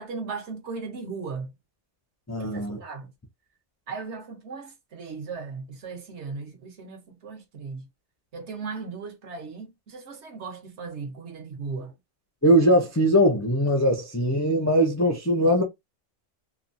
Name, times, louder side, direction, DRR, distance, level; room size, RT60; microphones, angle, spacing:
voice 1, 0.0-1.5 2.4-3.1 3.9-7.9 8.3-12.0, right 4 dB, 65° right, 1.1 m, -37 dB
voice 2, 2.3-2.8 12.4-15.6, equal, 30° left, 0.3 m, -21 dB
2.9 x 2.3 x 2.6 m
omnidirectional pair, 1.3 m